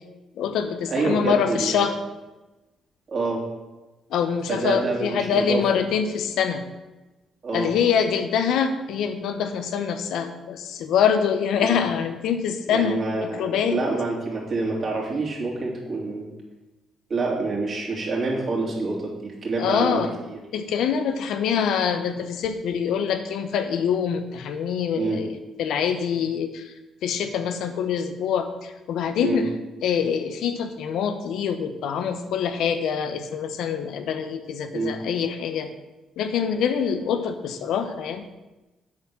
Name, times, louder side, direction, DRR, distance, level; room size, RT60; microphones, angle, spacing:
voice 1, 0.4-2.0 4.1-6.6 7.5-13.8 19.6-20.1 20.5-26.7 27.0-29.5 29.8-35.7 36.2-38.2, left 7 dB, 80° left, 8 dB, 0.8 m, -25 dB
voice 2, 0.9-1.9 3.1-3.4 4.5-5.6 7.4-7.7 11.6-11.8 12.7-16.3 17.1-20.4 24.9-25.2 29.2-29.4 34.7-35.0, right 3 dB, 45° right, -4 dB, 3.2 m, -27 dB
8.8 x 4.4 x 7.1 m, 1.1 s
cardioid pair, 90°, 0 cm